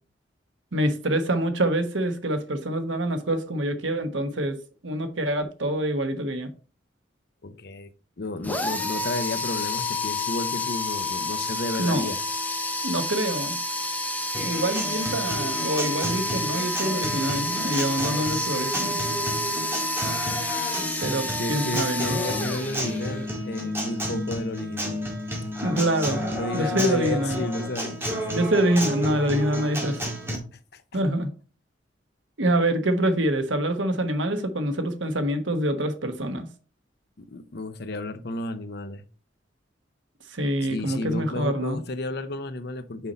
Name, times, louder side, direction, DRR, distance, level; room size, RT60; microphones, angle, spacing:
voice 1, 0.7-4.6 4.8-6.5 11.8-12.0 12.8-13.6 14.4-19.0 21.0-22.2 25.6-27.4 28.3-30.1 30.9-31.3 32.4-36.5 40.3-41.8, right 1 dB, 85° right, 1.2 m, -26 dB
voice 2, 7.4-7.9 8.2-12.2 21.4-25.0 26.3-28.3 30.5-30.8 37.2-39.0 40.6-43.1, left 2 dB, 60° left, 0.8 m, -32 dB
sound 1, 8.4-23.3, left 2 dB, 10° left, 1.0 m, -29 dB
Acoustic guitar, 14.3-30.4, equal, 15° right, 2.1 m, -31 dB
6.1 x 5.4 x 4.2 m
head